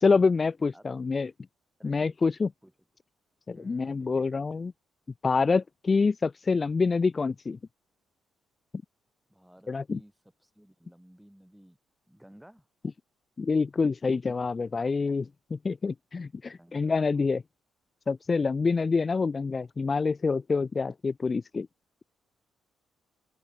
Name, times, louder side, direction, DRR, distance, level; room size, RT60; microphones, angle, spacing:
voice 1, 0.0-1.3 1.8-2.5 3.5-4.7 5.2-7.6 9.7-10.0 13.4-17.4 18.1-21.7, left 4 dB, 30° left, 0.3 m, -26 dB
voice 2, 1.8-2.3 2.6-2.7 3.5-4.5 9.3-10.1 10.4-11.8 12.1-12.7 16.4-17.2, equal, 5° right, 5.3 m, -55 dB
open air
cardioid pair, 90°, 0 cm